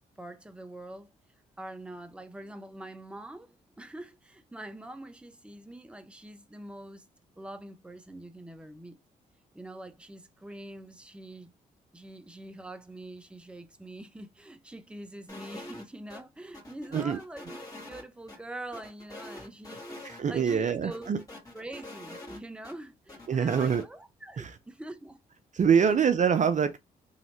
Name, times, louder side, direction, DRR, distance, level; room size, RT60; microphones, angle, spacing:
voice 1, 0.2-1.1 1.6-7.1 7.4-9.0 9.5-11.5 11.9-21.1 21.5-25.2 25.8-25.9, right 1 dB, 5° right, 0.7 m, -44 dB
sound 1, 15.3-16.2 16.5-18.4 18.7-20.2 20.5-20.6 20.9-22.7 23.1-23.9, left 1 dB, 20° left, 1.8 m, -44 dB
voice 2, 20.0-21.2 23.3-23.8 24.4-24.5 25.5-26.8, right 7 dB, 45° right, 0.5 m, -24 dB
3.1 x 2.8 x 2.9 m
hypercardioid pair, 50°, 18 cm